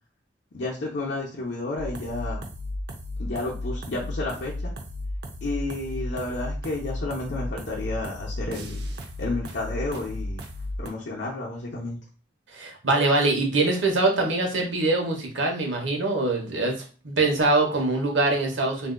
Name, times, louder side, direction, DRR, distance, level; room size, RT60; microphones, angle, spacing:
voice 1, 0.5-2.4 3.2-4.7 5.4-8.8 9.2-10.4 10.8-12.0, left 2 dB, 70° left, -4 dB, 0.7 m, -31 dB
sound 1, 1.8-10.9, left 1 dB, 60° right, 0.6 m, -34 dB
voice 2, 12.5-18.9, right 2 dB, 85° right, 1 dB, 1.0 m, -23 dB
3.7 x 2.7 x 2.2 m, 0.38 s
head